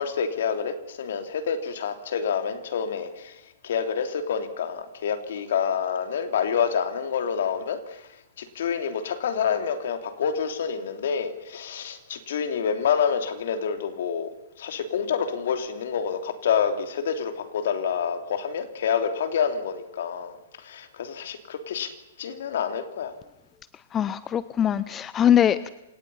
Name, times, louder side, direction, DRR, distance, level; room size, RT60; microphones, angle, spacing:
voice 1, 0.0-8.0 8.4-14.3 14.6-21.9 22.2-23.1, left 7 dB, 65° left, 6 dB, 3.3 m, -28 dB
voice 2, 23.9-25.7, left 9 dB, 25° left, 16 dB, 0.7 m, -22 dB
27.5 x 18.0 x 5.7 m, 0.95 s
hypercardioid pair, 120°, 0 cm